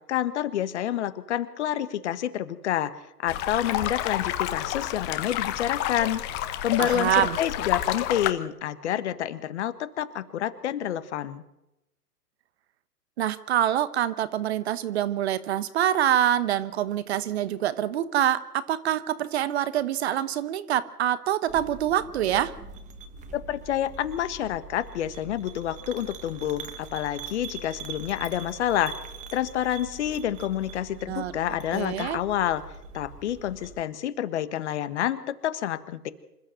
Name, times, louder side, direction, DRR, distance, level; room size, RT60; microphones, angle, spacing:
voice 1, 0.1-2.9 3.2-6.2 6.6-11.4 23.3-28.9 29.3-32.6 32.9-36.1, left 11 dB, 45° left, 13 dB, 1.5 m, -28 dB
sound 1, 3.3-8.3, left 13 dB, 20° left, 1.1 m, -30 dB
voice 2, 6.8-7.4 13.2-22.5 31.1-31.3 31.7-32.2, right 11 dB, 40° right, 14 dB, 1.2 m, -25 dB
sound 2, 21.5-33.8, right 4 dB, 15° right, 1.4 m, -43 dB
27.0 x 14.0 x 7.8 m, 0.90 s
figure-of-eight pair, 130°, 48 cm